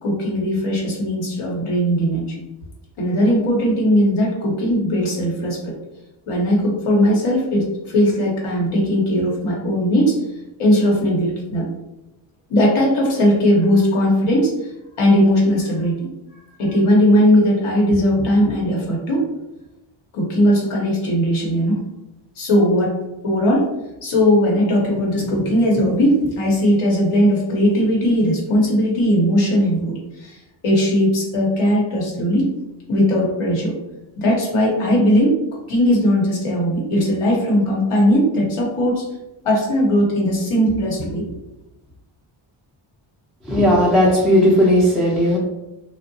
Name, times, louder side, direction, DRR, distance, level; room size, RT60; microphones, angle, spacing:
voice 1, 0.0-2.4 3.0-5.7 6.3-10.1 10.6-11.7 12.5-14.5 15.0-15.9 16.6-19.2 20.1-21.8 22.4-23.0 23.2-23.7 24.0-30.4 30.6-32.5 32.9-33.7 34.2-35.4 35.7-39.1 39.4-41.2, equal, 80° left, -2 dB, 0.9 m, -18 dB
voice 2, 43.5-45.4, equal, ahead, -6 dB, 0.3 m, -15 dB
2.7 x 2.0 x 2.6 m, 0.95 s
wide cardioid pair, 155°, 50 cm